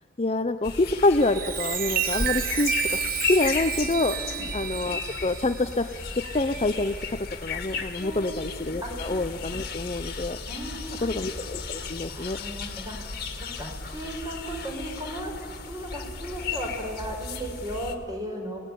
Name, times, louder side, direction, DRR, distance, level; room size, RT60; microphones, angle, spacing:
voice 1, 0.2-4.2 4.5-5.9 6.2-6.9 7.4-10.4 11.0-12.4, left 2 dB, 30° left, 9 dB, 0.6 m, -26 dB
sound 1, 0.6-17.9, left 4 dB, 50° left, 2.1 m, -35 dB
Chime, 1.1-7.1 7.6-7.9, right 8 dB, 45° right, 1.1 m, -31 dB
voice 2, 4.2-4.5 8.0-8.5 8.8-9.2 10.5-11.1 12.1-15.3 15.7-18.6, equal, 20° right, 2 dB, 4.7 m, -36 dB
26.0 x 18.5 x 9.9 m, 2.1 s
head